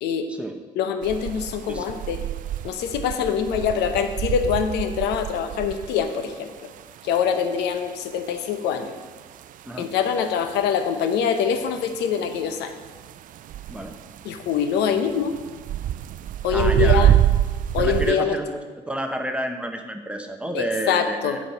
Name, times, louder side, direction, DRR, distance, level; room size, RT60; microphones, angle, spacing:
voice 1, 0.8-2.2 2.6-6.5 7.0-8.9 9.8-12.7 14.2-15.4 16.4-17.1 17.7-18.3 20.5-21.4, left 7 dB, 85° left, 8 dB, 0.8 m, -24 dB
sound 1, 1.0-18.1, right 12 dB, 50° right, 0.4 m, -27 dB
voice 2, 1.7-2.0 9.6-9.9 13.7-14.0 16.5-17.2 17.8-18.6 18.9-21.4, right 1 dB, 5° right, 5 dB, 0.9 m, -30 dB
10.5 x 4.7 x 5.6 m, 1.4 s
cardioid pair, 110°, 17 cm